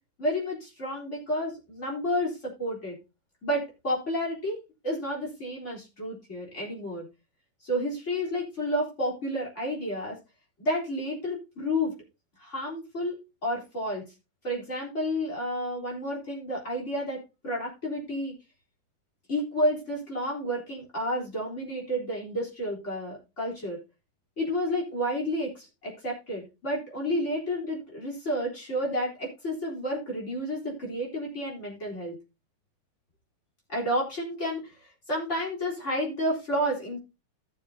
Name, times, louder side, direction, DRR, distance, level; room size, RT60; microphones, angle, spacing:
voice 1, 0.2-2.9 3.4-4.6 4.8-7.1 7.6-10.2 10.6-11.9 12.4-14.0 14.4-18.3 19.3-23.8 24.4-32.2 33.7-34.7 35.1-37.0, equal, 30° left, -3 dB, 4.1 m, -30 dB
15.5 x 7.0 x 2.8 m, 0.28 s
omnidirectional pair, 2.4 m